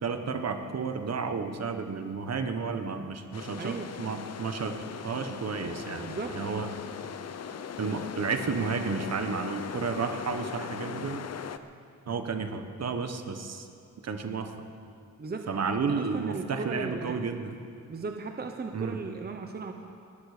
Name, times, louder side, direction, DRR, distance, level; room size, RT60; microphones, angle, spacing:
voice 1, 0.0-4.8 5.0-6.0 6.3-6.7 7.8-11.2 12.1-13.7 14.0-14.5 15.5-17.5 18.7-19.0, right 5 dB, 55° right, 7 dB, 1.1 m, -32 dB
sound 1, 3.3-11.6, left 7 dB, 55° left, 0.6 m, -39 dB
voice 2, 3.6-4.0 6.0-6.5 15.2-17.2 17.9-19.7, right 4 dB, 30° right, 5 dB, 0.9 m, -37 dB
19.0 x 13.5 x 5.0 m, 2.4 s
wide cardioid pair, 155°, 31 cm